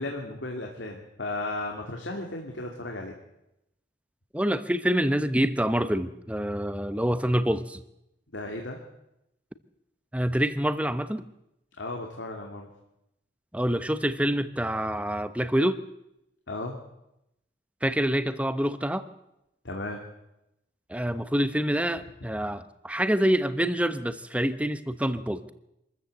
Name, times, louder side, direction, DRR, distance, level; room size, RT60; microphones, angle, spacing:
voice 1, 0.0-3.1 8.3-8.8 11.8-12.7 16.5-16.8 19.6-20.0, left 2 dB, 85° left, 1 dB, 2.6 m, -35 dB
voice 2, 4.3-7.8 10.1-11.2 13.5-15.8 17.8-19.0 20.9-25.5, equal, 5° right, 11 dB, 0.9 m, -26 dB
26.0 x 14.0 x 7.9 m, 0.87 s
head